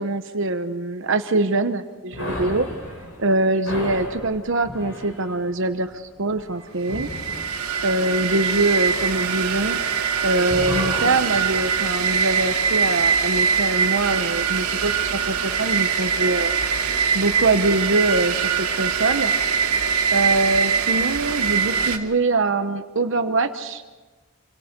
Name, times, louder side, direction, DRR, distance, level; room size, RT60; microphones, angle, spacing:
voice 1, 0.0-2.7 3.2-7.1 7.8-9.8 10.2-16.5 17.1-19.3 20.1-23.8, right 2 dB, 60° right, 7 dB, 1.0 m, -23 dB
sound 1, 2.1-10.1 10.4-12.8, left 1 dB, 55° left, 7.0 m, -35 dB
howling-machine, 6.8-22.0, right 6 dB, 90° right, 2.5 m, -23 dB
27.5 x 26.0 x 5.3 m, 1.3 s
head